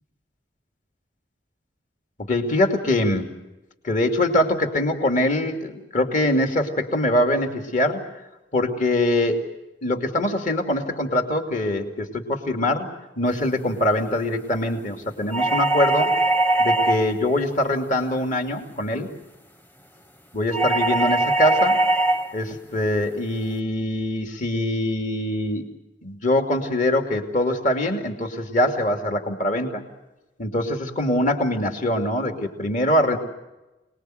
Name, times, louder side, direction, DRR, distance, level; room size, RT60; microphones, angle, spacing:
voice 1, 2.2-3.3 3.8-8.1 8.5-9.5 9.8-12.9 13.2-16.1 16.6-19.1 20.3-21.8 22.3-25.7 26.0-29.8 30.4-33.2, left 1 dB, 45° left, 4 dB, 2.7 m, -23 dB
sound 1, 15.3-17.2 20.5-22.3, right 2 dB, 10° left, 0.9 m, -21 dB
27.5 x 20.5 x 7.9 m, 1.0 s
head